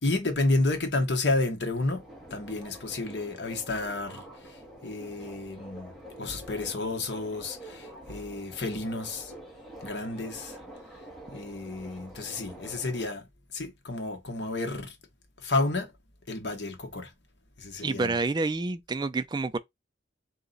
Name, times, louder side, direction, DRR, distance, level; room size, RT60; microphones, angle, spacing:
voice 1, 0.0-2.0 2.3-5.9 6.2-9.3 9.8-10.6 11.3-13.3 13.5-14.9 15.4-15.9 16.3-17.1 17.6-18.1, left 2 dB, 65° left, 1.2 m, -31 dB
Subway metro underground, 1.7-13.1, right 1 dB, ahead, 1.8 m, -47 dB
voice 2, 17.8-19.6, right 3 dB, 25° right, 0.3 m, -28 dB
3.8 x 2.9 x 4.0 m
head